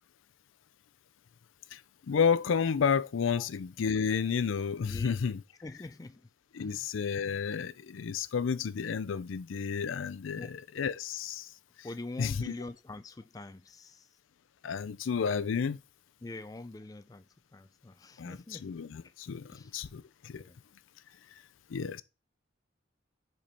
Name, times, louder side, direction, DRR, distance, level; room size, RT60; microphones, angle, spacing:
voice 1, 2.1-5.4 6.5-11.5 12.2-12.5 14.6-15.8 18.2-19.4 19.7-20.4 21.7-22.0, left 6 dB, 90° left, 0.4 m, -31 dB
voice 2, 5.6-6.3 6.6-6.9 10.3-10.5 11.8-14.1 16.2-18.7 19.5-19.7 20.4-20.6, left 2 dB, 20° left, 0.3 m, -44 dB
5.2 x 4.4 x 5.5 m
head